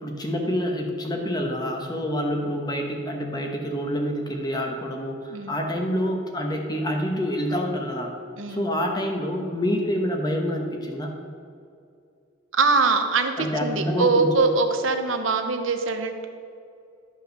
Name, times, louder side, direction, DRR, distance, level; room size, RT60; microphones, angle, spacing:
voice 1, 0.0-8.1 8.5-11.1 13.4-14.3, equal, 20° left, 2 dB, 1.1 m, -27 dB
voice 2, 8.4-8.7 12.5-16.3, right 4 dB, 80° right, 6 dB, 0.9 m, -23 dB
11.5 x 5.6 x 6.4 m, 2.4 s
head